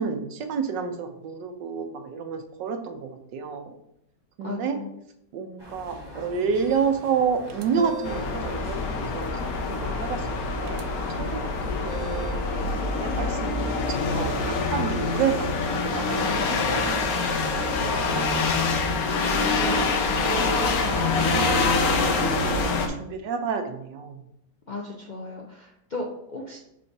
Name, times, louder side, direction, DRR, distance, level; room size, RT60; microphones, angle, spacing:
voice 1, 0.0-3.8 4.4-4.8 5.3-11.4 11.6-18.4 20.2-20.4 20.9-24.3, right 6 dB, 85° right, 6 dB, 1.4 m, -30 dB
voice 2, 4.4-4.9 19.6-20.2 20.6-21.6 24.7-26.6, left 2 dB, 80° left, -1 dB, 0.4 m, -36 dB
sound 1, 5.6-13.2, right 1 dB, 15° right, 1.2 m, -42 dB
sound 2, 7.5-8.4 10.6-10.8 11.9-12.5, right 8 dB, 65° right, 0.8 m, -38 dB
sound 3, 8.0-22.9, left 3 dB, 65° left, 1.2 m, -25 dB
5.2 x 4.2 x 4.7 m, 0.77 s
omnidirectional pair, 1.9 m